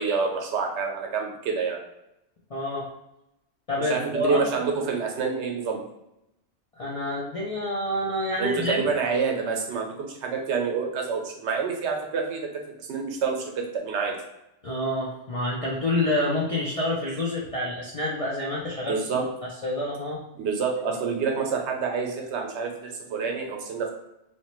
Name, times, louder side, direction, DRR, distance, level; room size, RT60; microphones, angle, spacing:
voice 1, 0.0-1.8 3.9-5.8 8.4-14.2 18.9-19.3 20.4-23.9, right 5 dB, 80° right, 2 dB, 0.9 m, -27 dB
voice 2, 2.5-2.9 3.7-4.4 6.8-8.8 14.6-19.0 19.6-20.2, left 1 dB, 55° left, -5 dB, 0.4 m, -27 dB
2.8 x 2.1 x 2.9 m, 0.87 s
omnidirectional pair, 1.2 m